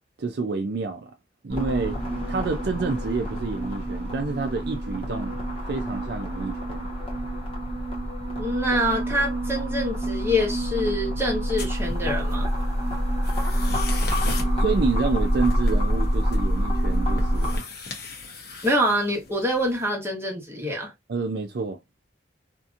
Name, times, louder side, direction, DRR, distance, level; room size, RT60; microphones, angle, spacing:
voice 1, 0.2-1.1 1.4-2.0 2.3-6.9 14.6-17.6 21.1-21.8, right 4 dB, 60° right, 0.4 m, -28 dB
sound 1, 1.5-17.6, equal, 30° left, 1.1 m, -26 dB
voice 2, 8.4-12.5 18.6-20.9, equal, 15° right, 1.1 m, -26 dB
sound 2, 11.6-19.8, left 3 dB, 55° left, 0.9 m, -40 dB
2.8 x 2.5 x 2.4 m
head